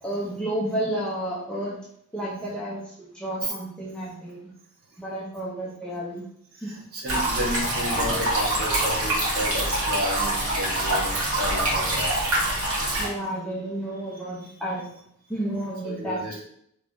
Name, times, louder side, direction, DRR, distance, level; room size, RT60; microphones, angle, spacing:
voice 1, 0.0-1.8 2.1-4.5 5.0-6.2 6.6-6.7 13.0-14.9 15.3-16.2, right 1 dB, 5° left, -6 dB, 0.6 m, -31 dB
voice 2, 6.6-11.1 11.4-12.1 12.4-12.5 13.0-13.1 15.8-16.4, equal, 45° right, -3 dB, 1.0 m, -32 dB
sound 1, 7.1-13.1, right 1 dB, 65° right, 1.4 m, -25 dB
2.9 x 2.6 x 3.6 m, 0.70 s
head